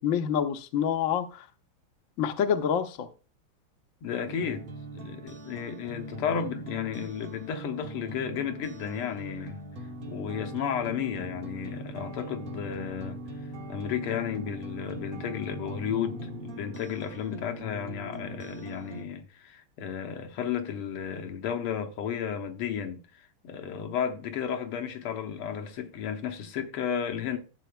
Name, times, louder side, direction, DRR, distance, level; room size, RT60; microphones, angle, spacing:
voice 1, 0.0-1.5 2.2-3.1, left 8 dB, 60° left, 0.8 m, -27 dB
voice 2, 4.0-4.7 4.9-9.6 10.1-13.2 13.7-23.0 23.4-27.4, left 8 dB, 85° left, 1.9 m, -33 dB
sound 1, 4.2-19.0, right 1 dB, 40° right, 0.7 m, -41 dB
13.5 x 7.7 x 2.2 m
omnidirectional pair, 2.4 m